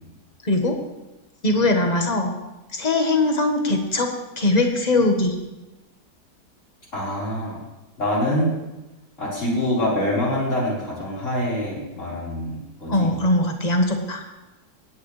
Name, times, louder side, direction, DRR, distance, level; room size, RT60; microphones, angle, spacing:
voice 1, 0.4-0.8 1.4-2.3 2.7-4.1 4.4-5.3 12.9-14.2, left 2 dB, 25° left, 3 dB, 1.3 m, -21 dB
voice 2, 6.9-7.6 8.0-8.5 9.2-13.1, left 1 dB, 40° left, -7 dB, 4.9 m, -25 dB
18.0 x 9.3 x 3.3 m, 1.0 s
omnidirectional pair, 1.9 m